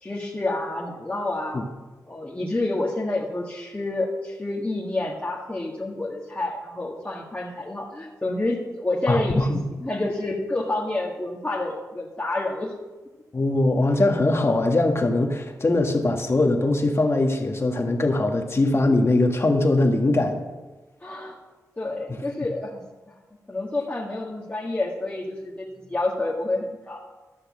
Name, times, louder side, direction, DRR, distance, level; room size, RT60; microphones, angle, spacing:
voice 1, 0.0-1.6 2.1-9.5 9.8-12.7 21.0-21.4 21.8-22.8 23.5-27.0, left 2 dB, 20° left, -5 dB, 1.7 m, -28 dB
voice 2, 9.1-9.6 13.3-20.4 22.1-22.2, left 2 dB, 40° left, 4 dB, 1.6 m, -21 dB
13.0 x 6.6 x 6.3 m, 1.2 s
cardioid pair, 60°, 7 cm